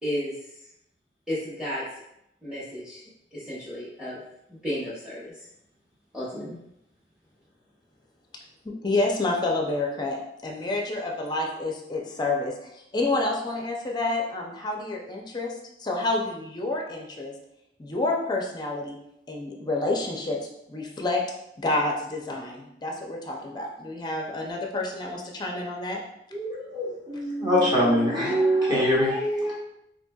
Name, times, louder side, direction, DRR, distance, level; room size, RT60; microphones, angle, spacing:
voice 1, 0.0-0.3 1.3-1.8 2.4-3.0 3.3-4.2 4.5-5.5 6.1-6.6, equal, ahead, -10 dB, 1.0 m, -33 dB
voice 2, 8.6-15.5 15.8-17.3 17.8-19.0 19.3-20.4 20.7-21.2 21.6-26.0, left 2 dB, 25° left, 0 dB, 0.5 m, -29 dB
voice 3, 26.3-29.6, equal, 25° right, -6 dB, 1.1 m, -23 dB
4.2 x 2.8 x 2.3 m, 0.79 s
head